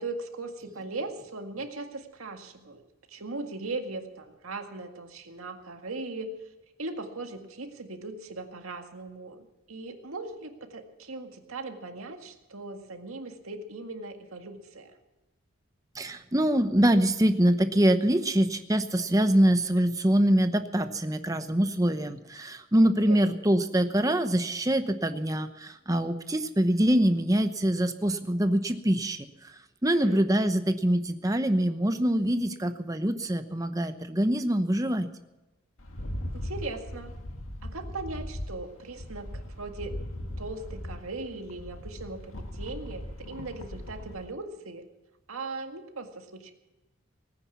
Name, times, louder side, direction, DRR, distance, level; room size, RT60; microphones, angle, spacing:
voice 1, 0.0-2.8 3.1-6.3 6.8-14.9 23.1-23.4 29.8-30.3 36.3-37.1 37.6-40.0 40.4-44.9 45.3-46.5, right 3 dB, 85° right, 4 dB, 1.9 m, -39 dB
voice 2, 16.0-29.3 29.8-35.1, right 1 dB, 15° right, 8 dB, 0.9 m, -24 dB
Rattle, 35.8-44.2, left 1 dB, 75° left, 1.9 m, -39 dB
18.5 x 9.9 x 7.1 m, 1.0 s
head